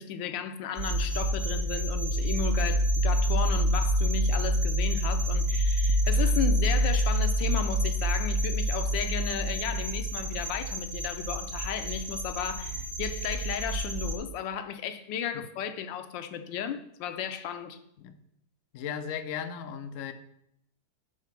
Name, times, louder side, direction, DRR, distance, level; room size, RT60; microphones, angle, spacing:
voice 1, 0.0-17.8, left 8 dB, 90° left, 1.3 m, -34 dB
sound 1, 0.8-14.2, equal, 40° right, 1.4 m, -27 dB
voice 2, 18.7-20.1, left 8 dB, 70° left, 0.7 m, -36 dB
5.7 x 4.7 x 5.7 m
omnidirectional pair, 1.9 m